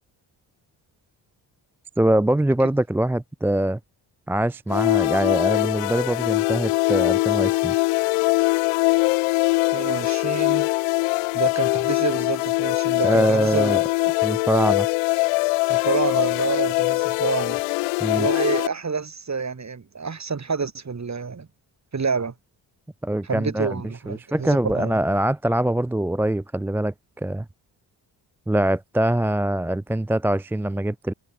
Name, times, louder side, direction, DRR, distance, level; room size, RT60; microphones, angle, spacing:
voice 1, 2.0-3.8 4.3-7.7 13.0-13.8 14.2-14.9 18.0-18.3 23.0-27.5 28.5-31.1, right 1 dB, 5° right, 0.4 m, -23 dB
sound 1, 4.7-18.7, left 29 dB, 90° left, 0.5 m, -22 dB
voice 2, 9.7-10.7 11.3-14.1 15.7-17.6 18.1-21.5 21.9-22.3 23.2-25.0, right 5 dB, 35° right, 2.4 m, -28 dB
supercardioid pair, 45°, 50 cm